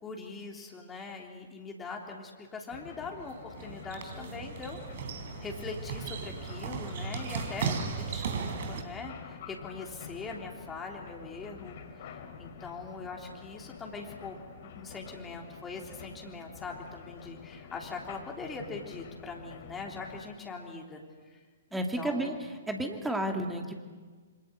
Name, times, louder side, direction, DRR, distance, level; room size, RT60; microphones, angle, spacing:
voice 1, 0.0-4.8 5.4-21.4 21.7-22.3, left 4 dB, 15° left, 0 dB, 3.4 m, -42 dB
sound 1, 2.7-20.2, left 7 dB, 45° left, 3.8 m, -48 dB
sound 2, 3.2-8.8, right 5 dB, 50° right, 3.6 m, -36 dB
voice 2, 21.7-23.7, right 1 dB, 5° right, 3 dB, 2.6 m, -32 dB
27.0 x 26.5 x 8.0 m, 1.5 s
figure-of-eight pair, 115°, 0 cm